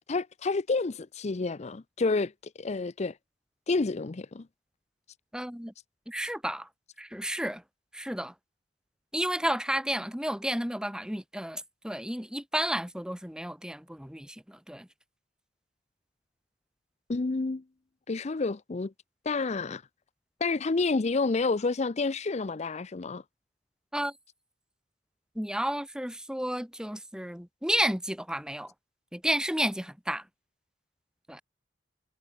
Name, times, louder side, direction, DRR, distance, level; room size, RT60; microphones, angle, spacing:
voice 1, 0.1-2.3 2.6-3.2 3.7-4.4 17.1-17.6 18.1-18.9 19.3-19.8 20.4-23.2, left 3 dB, 40° left, 0.5 m, -29 dB
voice 2, 5.3-5.7 6.1-6.7 7.0-7.6 7.9-8.3 9.1-14.9 23.9-24.1 25.4-28.7 29.1-30.2 31.3-31.4, right 1 dB, 5° right, 2.4 m, -32 dB
head